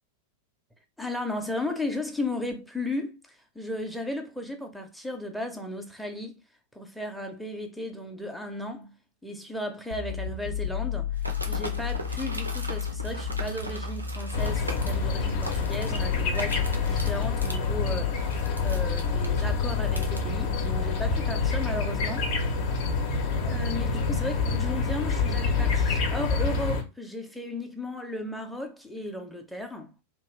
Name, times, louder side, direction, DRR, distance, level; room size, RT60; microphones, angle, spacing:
voice 1, 1.0-6.4 6.7-11.2 11.5-22.3 23.4-29.9, left 1 dB, ahead, 0.6 m, -35 dB
sound 1, 9.9-21.8, left 8 dB, 85° left, 0.5 m, -32 dB
sound 2, 11.2-20.2, right 1 dB, 85° right, 0.6 m, -39 dB
sound 3, 14.3-26.8, left 4 dB, 45° left, 0.7 m, -28 dB
2.9 x 2.4 x 3.2 m
figure-of-eight pair, 90°, 0 cm